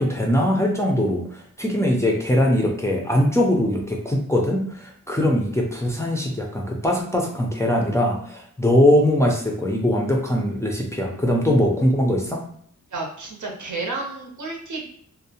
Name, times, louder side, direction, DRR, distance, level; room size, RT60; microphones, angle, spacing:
voice 1, 0.0-12.4, left 1 dB, 10° left, 0 dB, 0.4 m, -21 dB
voice 2, 12.9-14.9, right 3 dB, 85° right, -1 dB, 0.7 m, -31 dB
2.6 x 2.0 x 2.7 m, 0.63 s
wide cardioid pair, 120°, 29 cm